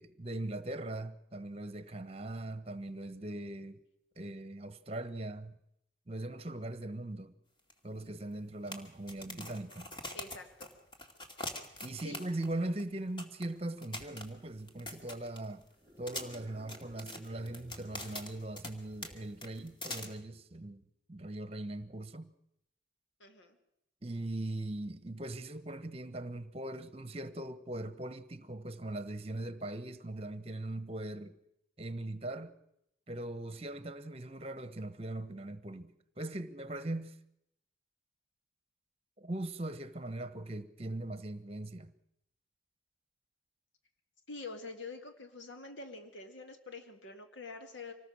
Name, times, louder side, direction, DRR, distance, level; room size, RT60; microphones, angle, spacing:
voice 1, 0.0-3.8 4.2-5.6 6.1-7.3 7.8-9.9 11.8-15.6 16.0-20.8 21.1-22.3 24.0-31.4 31.8-32.5 33.1-37.2 39.2-41.9, right 1 dB, 30° right, 1.2 m, -40 dB
sound 1, 7.7-7.8 8.0-8.1 8.7-12.5 12.8-12.9 13.2-13.4 13.8-15.6 16.1-18.7 19.0-19.1 19.4-20.0, left 1 dB, 25° left, 2.4 m, -43 dB
voice 2, 10.1-10.7 12.0-12.2 23.2-23.6 44.3-47.9, left 3 dB, 80° left, 2.1 m, -46 dB
sound 2, 15.7-19.4, equal, 10° right, 2.2 m, -57 dB
26.0 x 19.5 x 6.4 m
head